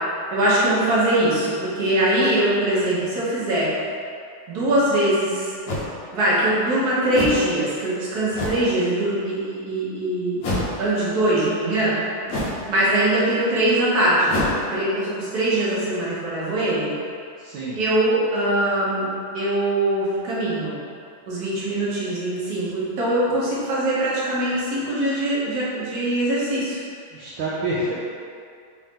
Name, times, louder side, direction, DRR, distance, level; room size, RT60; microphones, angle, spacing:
voice 1, 0.3-3.7 4.5-5.5 6.1-10.4 10.8-12.0 12.7-14.4 14.7-16.9 17.7-19.1 19.3-20.8 21.3-26.8, right 1 dB, 55° right, -8 dB, 1.6 m, -22 dB
sound 1, 4.7-4.8 5.7-5.9 7.1-7.5 8.3-8.7 10.4-10.8 12.3-12.7 14.3-14.6, left 1 dB, 60° left, 1.0 m, -26 dB
voice 2, 17.4-17.8 27.1-27.9, right 2 dB, 70° right, -9 dB, 1.3 m, -27 dB
4.1 x 3.5 x 3.6 m, 2.4 s
omnidirectional pair, 2.3 m